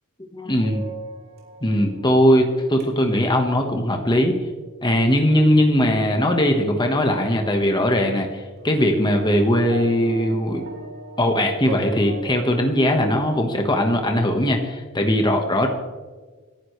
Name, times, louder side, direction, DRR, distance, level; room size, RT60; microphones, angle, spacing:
voice 1, 0.3-0.8 1.6-4.4 4.8-10.6 11.2-15.7, equal, 20° left, 3 dB, 1.4 m, -20 dB
sound 1, 0.6-5.0 5.5-5.7 8.6-13.9, right 2 dB, 45° right, 3.7 m, -39 dB
27.5 x 11.5 x 3.3 m, 1.4 s
head